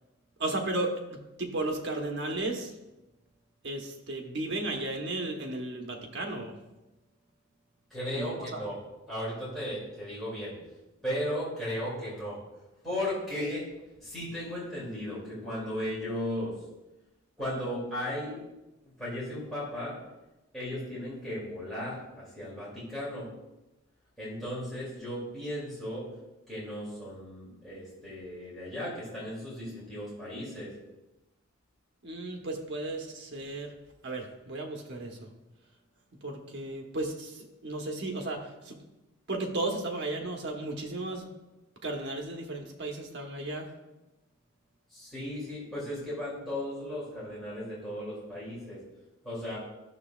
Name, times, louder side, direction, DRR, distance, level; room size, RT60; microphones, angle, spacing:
voice 1, 0.4-2.8 3.6-6.6 8.1-8.7 32.0-33.7 34.0-35.3 36.2-38.8 39.3-41.3 41.8-43.7, right 2 dB, 55° right, 2 dB, 1.1 m, -34 dB
voice 2, 7.9-8.8 9.1-10.6 11.0-12.4 12.8-13.7 14.0-16.5 17.4-18.4 19.0-20.0 20.5-23.3 24.2-26.1 26.5-30.7 44.9-48.8 49.2-49.6, left 1 dB, ahead, -10 dB, 2.6 m, -36 dB
12.5 x 6.8 x 2.4 m, 1.0 s
head